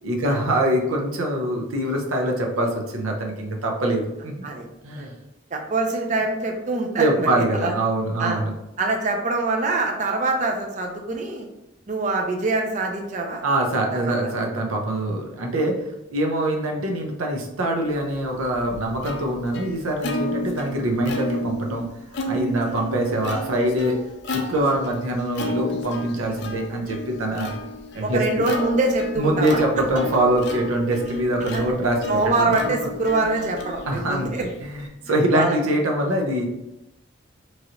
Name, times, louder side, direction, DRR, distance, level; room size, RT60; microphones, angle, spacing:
voice 1, 0.0-4.4 4.8-5.1 7.0-8.5 13.4-21.8 22.3-24.0 24.3-27.5 27.9-28.5 29.2-32.0 32.4-32.6 33.2-33.5 33.9-36.5, right 1 dB, 90° right, 1 dB, 0.6 m, -24 dB
voice 2, 5.5-7.3 7.5-7.7 8.2-8.4 8.8-11.5 11.9-13.4 14.0-14.1 22.7-22.8 28.0-29.6 31.4-31.6 32.1-34.5 35.3-35.6, right 2 dB, 35° right, 3 dB, 0.4 m, -24 dB
Plucked string instrument, 18.1-34.9, equal, 55° left, 0.4 m, -32 dB
3.1 x 2.8 x 2.5 m, 0.91 s
head